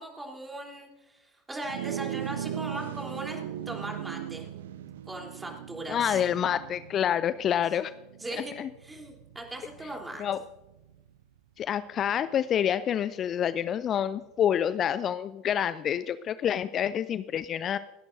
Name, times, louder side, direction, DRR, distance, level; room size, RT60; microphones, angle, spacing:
voice 1, 0.0-3.4 3.7-4.5 5.1-6.2 8.2-8.6 8.8-10.2, right 1 dB, 15° right, 0 dB, 3.5 m, -39 dB
sound 1, 1.6-11.2, right 10 dB, 70° right, 0.6 m, -39 dB
voice 2, 5.9-7.9 8.6-8.7 10.2-10.4 11.6-17.8, left 9 dB, 35° left, 15 dB, 0.4 m, -27 dB
29.0 x 11.5 x 2.7 m, 1.1 s
figure-of-eight pair, 75°, 0 cm